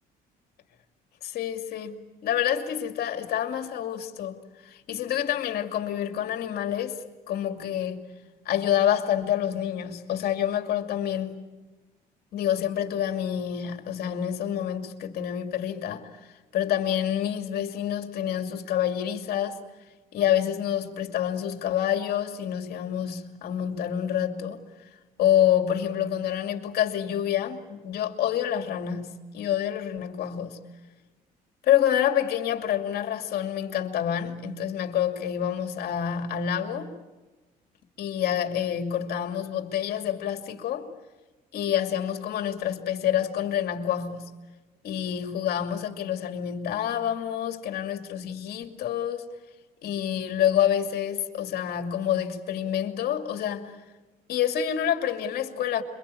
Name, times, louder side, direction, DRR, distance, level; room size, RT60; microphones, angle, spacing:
voice 1, 1.2-7.0 7.3-8.1 8.4-11.3 12.3-16.1 16.5-19.6 20.1-24.6 25.2-30.6 31.6-36.9 38.0-40.9 41.5-44.3 44.8-49.3 49.8-53.7 54.3-55.8, left 10 dB, 65° left, 2.6 m, -27 dB
27.0 x 24.0 x 8.6 m
cardioid pair, 110°, 17 cm